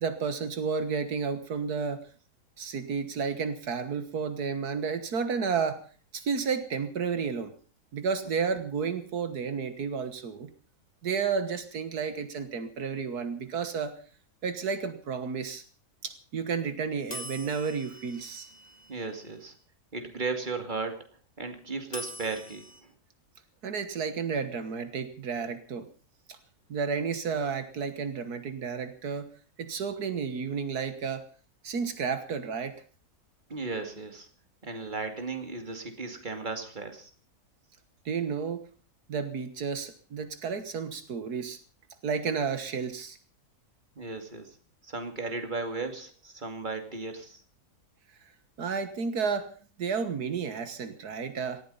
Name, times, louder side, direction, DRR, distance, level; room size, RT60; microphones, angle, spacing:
voice 1, 0.0-2.0 2.6-5.8 6.1-7.5 7.9-10.5 11.0-13.9 14.4-15.6 16.0-18.5 23.6-25.9 26.3-26.4 26.7-29.3 29.6-31.2 31.6-32.8 38.1-38.6 39.1-41.6 42.0-43.2 48.6-49.5 49.8-51.6, right 6 dB, 80° right, 10 dB, 1.9 m, -31 dB
sound 1, 17.1-19.3 21.9-22.8, left 1 dB, 25° left, 2.0 m, -43 dB
voice 2, 18.9-19.5 19.9-21.0 21.4-22.6 33.5-34.3 34.6-37.1 44.0-44.6 44.8-47.4, right 3 dB, 30° right, 6 dB, 2.6 m, -35 dB
18.5 x 13.5 x 5.6 m, 0.40 s
omnidirectional pair, 1.6 m